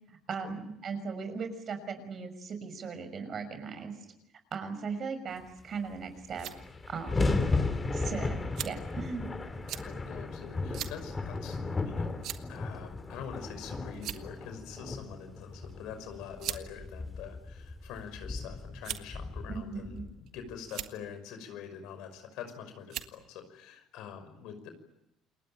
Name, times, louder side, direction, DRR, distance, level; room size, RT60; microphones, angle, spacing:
voice 1, 0.1-3.9 4.5-6.5 6.9-7.4 7.9-9.3 19.5-20.0, right 5 dB, 45° right, 9 dB, 6.1 m, -38 dB
sound 1, 5.9-6.0 6.2-20.5, left 3 dB, 25° left, 3.3 m, -35 dB
sound 2, 6.3-6.6 7.4-7.5 8.6-8.9 9.7-9.9 10.7-11.0 11.3-11.5 12.2-12.6 13.5-13.6 13.9-14.4 15.5-15.7 16.4-16.6 17.5-18.0 18.8-19.2 20.0-20.3 20.6-20.9 22.1-22.4 22.9-23.2, right 12 dB, 70° right, 1.6 m, -39 dB
voice 2, 9.7-12.1 12.5-24.7, left 7 dB, 75° left, 8 dB, 5.7 m, -45 dB
28.5 x 21.0 x 9.1 m, 0.82 s
supercardioid pair, 95°, 0 cm